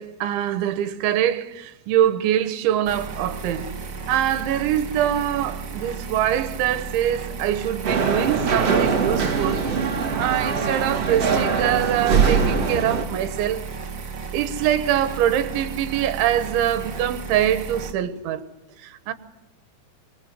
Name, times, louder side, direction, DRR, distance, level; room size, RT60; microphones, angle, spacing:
voice 1, 0.0-3.7 4.1-13.6 14.3-18.5 18.8-19.1, right 11 dB, 85° right, 3.6 m, -24 dB
sound 1, 2.8-17.9, right 4 dB, 55° right, 1.2 m, -34 dB
sound 2, 7.8-13.0, right 5 dB, 40° right, 2.9 m, -22 dB
26.0 x 23.5 x 8.0 m
omnidirectional pair, 5.3 m